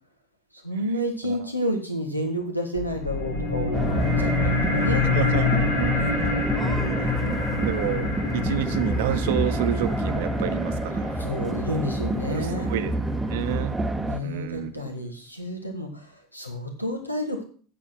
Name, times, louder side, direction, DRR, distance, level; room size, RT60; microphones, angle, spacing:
voice 1, 0.6-5.1 5.9-6.6 11.2-12.7 14.0-17.4, equal, 90° left, 3 dB, 1.7 m, -30 dB
sound 1, 2.7-13.7, left 3 dB, 70° left, 2.7 m, -27 dB
sound 2, 3.7-14.2, right 2 dB, 10° right, 0.9 m, -28 dB
voice 2, 5.1-6.0 7.0-7.2 7.6-8.1 8.3-11.2 12.3-12.9 13.3-13.8 14.2-14.7, right 11 dB, 60° right, 12 dB, 0.8 m, -29 dB
8.6 x 7.2 x 6.0 m, 0.42 s
figure-of-eight pair, 75°, 0 cm